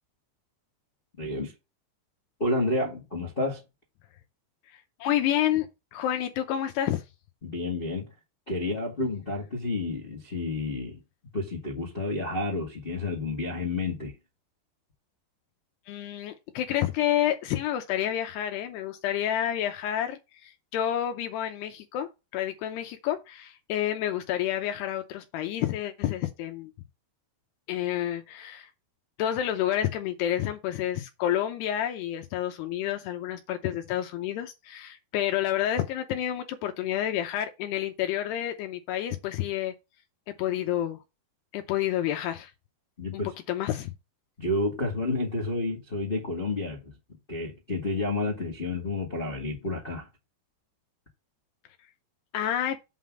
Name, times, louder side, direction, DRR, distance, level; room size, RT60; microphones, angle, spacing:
voice 1, 1.2-1.5 2.4-3.6 7.4-8.1 8.5-11.0 11.3-14.1 43.0-43.3 44.4-46.9 47.3-50.1, left 2 dB, 40° left, 0.7 m, -30 dB
voice 2, 4.7-7.1 15.9-26.7 27.7-28.7 29.2-39.7 40.4-41.0 41.5-42.5 43.5-43.9 52.3-52.8, left 11 dB, 80° left, 2.7 m, -29 dB
8.3 x 3.9 x 6.0 m
omnidirectional pair, 5.0 m